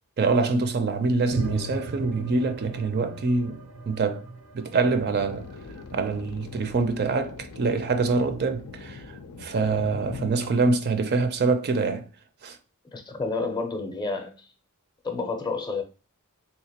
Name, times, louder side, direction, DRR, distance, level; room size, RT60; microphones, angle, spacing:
voice 1, 0.2-4.2 4.5-5.5 5.9-12.1 12.4-12.6, right 4 dB, 45° right, 0.4 m, -25 dB
sound 1, 1.3-6.0, right 2 dB, 90° right, 0.8 m, -36 dB
sound 2, 4.8-10.3, left 4 dB, 85° left, 0.5 m, -41 dB
voice 2, 12.9-14.5 15.0-15.8, left 3 dB, 20° left, 0.5 m, -30 dB
3.6 x 2.8 x 2.8 m
head